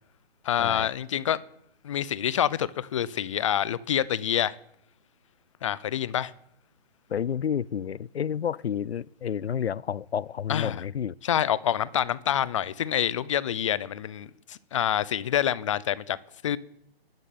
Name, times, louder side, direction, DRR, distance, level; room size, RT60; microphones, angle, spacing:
voice 1, 0.4-1.4 1.8-4.5 5.6-6.3 10.5-10.8 11.2-16.2 16.4-16.6, left 10 dB, 30° left, 0.7 m, -27 dB
voice 2, 7.1-11.2, left 8 dB, 80° left, 0.6 m, -30 dB
12.0 x 11.0 x 9.4 m
hypercardioid pair, 150°, 31 cm